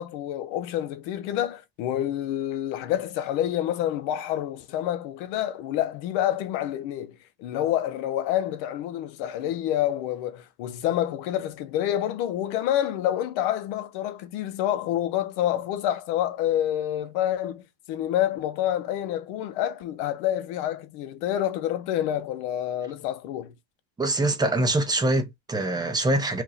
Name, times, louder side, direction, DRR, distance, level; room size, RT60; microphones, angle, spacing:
voice 1, 0.0-17.6 17.9-23.5, left 12 dB, 75° left, 0.8 m, -28 dB
voice 2, 24.0-26.4, right 1 dB, 10° right, 0.6 m, -24 dB
2.9 x 2.6 x 4.0 m
cardioid pair, 150°, 42 cm